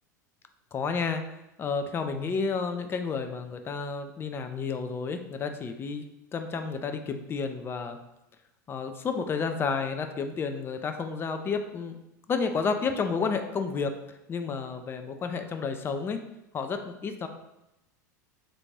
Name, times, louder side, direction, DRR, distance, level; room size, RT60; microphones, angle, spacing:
voice 1, 0.7-1.2 1.6-6.0 6.3-8.0 8.7-12.0 12.3-13.9 14.3-16.2 16.5-17.3, left 5 dB, 25° left, 7 dB, 0.4 m, -31 dB
3.3 x 2.6 x 3.1 m, 0.89 s
figure-of-eight pair, 80°, 10 cm